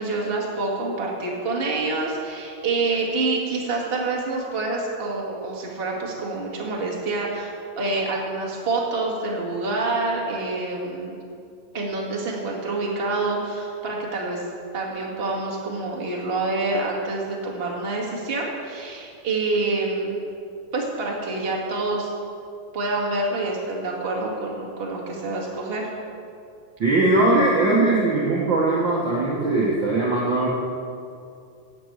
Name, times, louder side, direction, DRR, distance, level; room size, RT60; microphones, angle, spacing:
voice 1, 0.0-11.2 11.7-14.4 14.7-20.2 20.7-22.1 22.7-25.9, right 3 dB, 20° right, -3 dB, 1.8 m, -27 dB
voice 2, 26.8-30.5, right 2 dB, 45° right, -5 dB, 1.7 m, -20 dB
12.5 x 7.8 x 8.0 m, 2.5 s
omnidirectional pair, 3.7 m